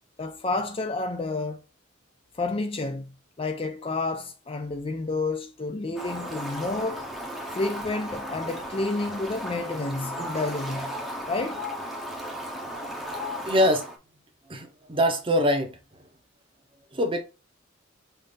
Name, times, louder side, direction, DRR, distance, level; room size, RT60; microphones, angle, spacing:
voice 1, 0.0-1.6 2.4-3.1 3.4-7.1 7.5-10.9 11.3-11.6, left 3 dB, 30° left, 0.5 m, -30 dB
Fowl, 6.0-14.0, equal, ahead, 0.9 m, -35 dB
voice 2, 13.5-13.9 14.5-16.0 16.9-17.2, equal, 25° right, 1.0 m, -24 dB
5.7 x 2.7 x 3.3 m
head